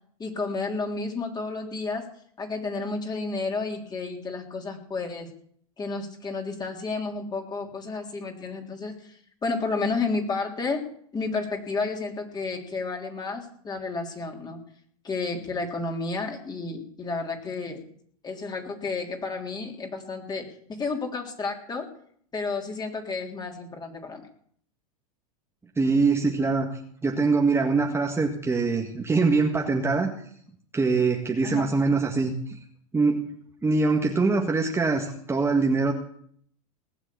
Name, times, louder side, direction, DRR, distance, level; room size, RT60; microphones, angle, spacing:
voice 1, 0.2-2.1 2.4-5.3 5.8-14.6 15.0-17.8 18.2-20.5 20.8-21.9 22.3-24.2 31.4-31.6, left 3 dB, 20° left, 3 dB, 3.5 m, -31 dB
voice 2, 25.8-26.7 27.0-30.1 30.7-32.6 32.9-33.2 33.6-35.9, right 4 dB, 15° right, 2 dB, 1.8 m, -23 dB
19.0 x 7.3 x 8.6 m, 0.62 s
hypercardioid pair, 105°, 19 cm